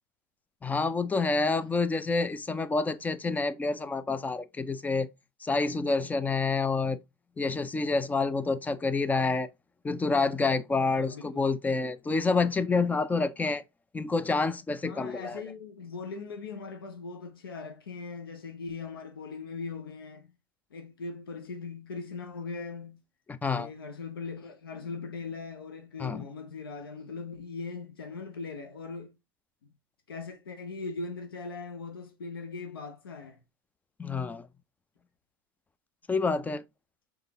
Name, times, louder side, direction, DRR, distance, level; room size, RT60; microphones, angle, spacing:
voice 1, 0.6-5.1 5.4-7.0 7.4-9.5 9.8-13.6 13.9-15.4 23.3-23.7 26.0-26.3 34.0-34.5 36.1-36.6, left 3 dB, 15° left, 0.5 m, -28 dB
voice 2, 10.9-11.5 14.8-20.3 20.7-23.0 23.5-29.2 30.1-33.4, left 4 dB, 90° left, 0.9 m, -40 dB
5.1 x 3.6 x 2.8 m
hypercardioid pair, 95°, 12 cm